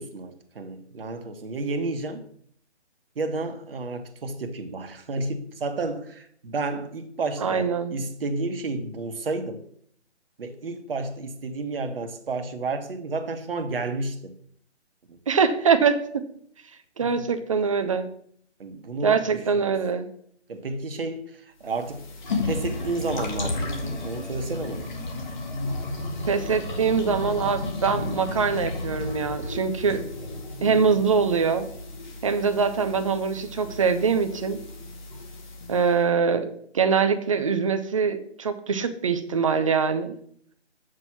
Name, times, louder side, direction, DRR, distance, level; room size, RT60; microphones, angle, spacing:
voice 1, 0.0-2.3 3.1-9.6 10.4-14.4 15.1-15.2 17.0-17.3 18.6-19.8 20.5-22.1 22.4-24.9, right 3 dB, 55° right, 1.3 m, -31 dB
voice 2, 7.4-7.9 15.3-16.2 17.0-18.1 19.0-20.1 26.3-30.0 30.6-31.7 32.2-34.6 35.7-40.2, right 5 dB, 30° right, 0.6 m, -23 dB
sound 1, 21.6-35.9, left 2 dB, 40° left, 2.0 m, -33 dB
7.4 x 6.4 x 5.9 m
figure-of-eight pair, 150°, 35 cm